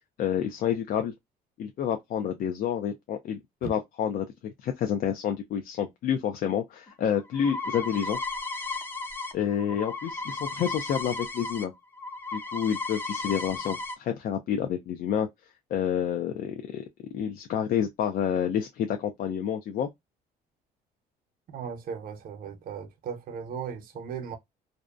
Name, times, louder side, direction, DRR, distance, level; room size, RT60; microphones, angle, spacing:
voice 1, 0.2-1.1 1.6-8.2 9.3-11.7 12.3-15.3 15.7-16.8 17.1-19.9, left 9 dB, 60° left, 0.5 m, -29 dB
sound 1, 6.9-11.6 11.9-14.0, left 3 dB, 10° left, 0.6 m, -35 dB
voice 2, 21.5-24.4, right 7 dB, 60° right, 0.7 m, -37 dB
2.6 x 2.1 x 2.3 m
cardioid pair, 110°, 17 cm